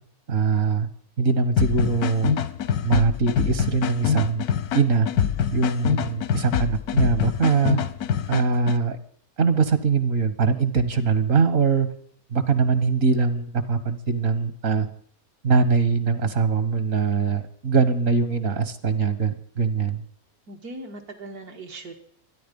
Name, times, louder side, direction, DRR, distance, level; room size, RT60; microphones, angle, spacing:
voice 1, 0.3-0.9 1.2-2.3 2.8-4.4 4.7-5.1 5.5-7.8 8.3-9.0 9.4-11.9 12.3-14.9 15.4-20.0, right 5 dB, 60° right, 12 dB, 1.7 m, -22 dB
sound 1, 1.6-8.8, left 8 dB, 85° left, 1.3 m, -25 dB
voice 2, 20.5-21.9, right 2 dB, 85° right, 3 dB, 2.5 m, -39 dB
23.5 x 10.5 x 5.4 m, 0.62 s
omnidirectional pair, 1.6 m